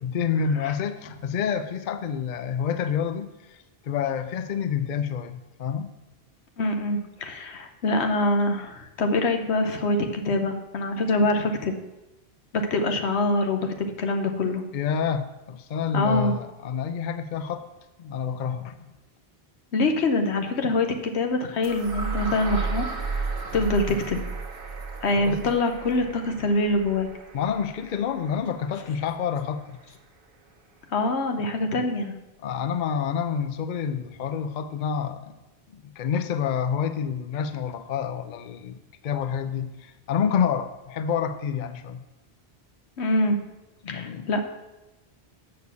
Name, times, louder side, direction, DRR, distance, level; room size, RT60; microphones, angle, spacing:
voice 1, 0.0-3.6 3.8-5.9 14.7-17.6 18.0-18.8 25.2-25.4 27.3-29.8 32.4-35.3 35.7-42.0 43.8-44.3, left 7 dB, 55° left, 10 dB, 0.6 m, -28 dB
voice 2, 6.6-11.7 12.5-14.6 15.9-16.3 19.7-23.2 23.5-24.2 25.0-27.1 30.9-32.1 43.0-43.4 43.9-44.4, left 2 dB, 85° left, 5 dB, 1.2 m, -24 dB
sound 1, 21.6-29.6, right 4 dB, 55° right, 1.2 m, -34 dB
6.7 x 6.5 x 6.9 m, 1.0 s
omnidirectional pair, 1.1 m